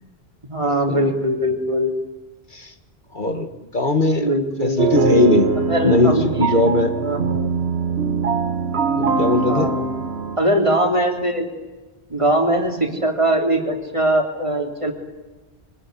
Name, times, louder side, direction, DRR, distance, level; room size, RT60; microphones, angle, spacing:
voice 1, 0.5-2.0 4.1-4.9 5.7-6.7 7.0-7.6 8.8-9.2 9.5-9.9 10.4-11.5 12.1-14.9, right 1 dB, 30° right, 3 dB, 3.6 m, -21 dB
voice 2, 3.1-3.5 3.7-4.3 4.6-5.5 5.8-7.0 9.0-9.7, left 2 dB, 50° left, 8 dB, 1.8 m, -19 dB
sound 1, 4.8-10.4, right 4 dB, 80° right, 1.6 m, -22 dB
24.5 x 20.0 x 9.6 m, 1.2 s
omnidirectional pair, 1.1 m